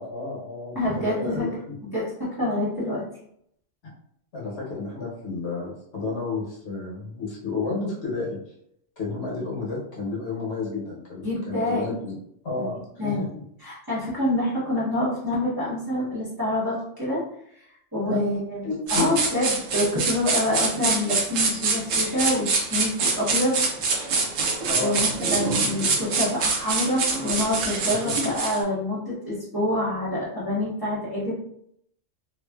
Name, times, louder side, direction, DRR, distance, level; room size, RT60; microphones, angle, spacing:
voice 1, 0.0-1.5 3.8-3.9 4.3-8.4 9.0-12.1 12.4-13.4 18.0-18.2 18.6-19.2 24.7-25.0 25.9-26.0, left 3 dB, 60° left, -4 dB, 1.0 m, -31 dB
voice 2, 0.7-1.5 1.8-2.0 2.4-3.0 11.2-12.0 12.6-12.7 13.0-13.2 13.6-17.2 17.6-17.7 17.9-24.1 24.8-31.3, left 1 dB, 20° right, -10 dB, 0.9 m, -27 dB
sound 1, 18.9-28.6, right 4 dB, 85° right, 1.0 m, -25 dB
2.5 x 2.4 x 2.2 m, 0.71 s
omnidirectional pair, 1.3 m